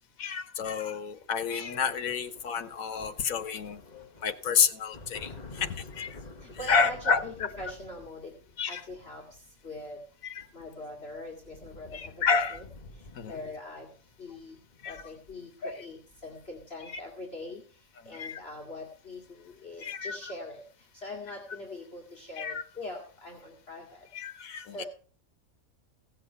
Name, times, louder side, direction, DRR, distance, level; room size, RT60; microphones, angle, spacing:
voice 1, 0.2-6.2 6.7-7.2 8.6-8.8 10.2-10.4 11.9-12.6 13.1-13.4 14.8-15.0 15.6-15.8 18.0-18.4 19.8-20.2 22.4-22.6 24.1-24.8, left 6 dB, 85° left, 10 dB, 1.5 m, -30 dB
sound 1, 1.6-17.3 18.5-18.7 19.0-19.7, left 2 dB, 30° left, 1.6 m, -51 dB
voice 2, 6.4-8.3 8.7-9.2 9.6-10.0 10.5-12.6 13.3-13.9 14.2-14.5 14.9-17.6 18.1-20.6 20.9-24.1 24.7-24.8, left 2 dB, 50° left, -1 dB, 2.4 m, -42 dB
16.5 x 7.5 x 5.5 m, 0.43 s
omnidirectional pair, 1.4 m